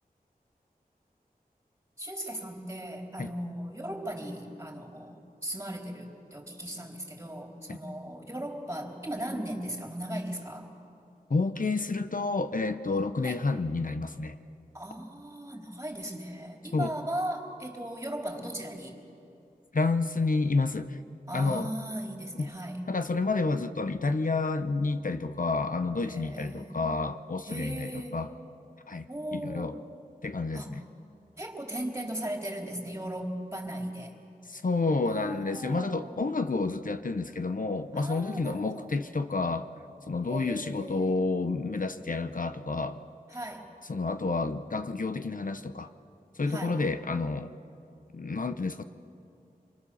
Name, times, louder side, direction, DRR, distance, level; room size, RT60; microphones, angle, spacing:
voice 1, 2.0-10.7 13.2-13.4 14.7-19.0 21.3-22.8 26.0-26.8 27.5-28.2 29.1-29.8 30.5-30.9 31.4-34.1 35.0-36.3 37.9-38.9 40.3-41.3 43.3-43.7 46.5-46.8, right 1 dB, 15° right, 1 dB, 4.0 m, -37 dB
voice 2, 11.3-14.3 16.7-16.9 19.7-21.0 21.3-21.7 22.4-22.5 22.9-28.3 28.9-29.7 30.2-30.8 34.5-39.7 40.1-43.0 43.9-45.9 46.4-47.5 48.1-48.8, left 3 dB, 60° left, 9 dB, 0.8 m, -29 dB
26.5 x 23.0 x 7.1 m, 2.6 s
wide cardioid pair, 60°, 16 cm